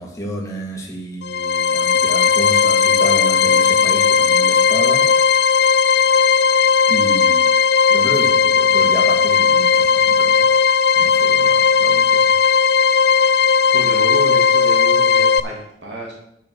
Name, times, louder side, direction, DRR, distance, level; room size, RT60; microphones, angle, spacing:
voice 1, 0.0-5.1 6.9-7.4 7.9-10.5 11.0-12.2, right 1 dB, 15° left, -1 dB, 2.0 m, -30 dB
sound 1, 1.2-15.4, left 6 dB, 60° left, 0.4 m, -15 dB
voice 2, 13.7-16.1, equal, 80° right, -2 dB, 2.9 m, -29 dB
9.3 x 5.6 x 6.5 m, 0.79 s
head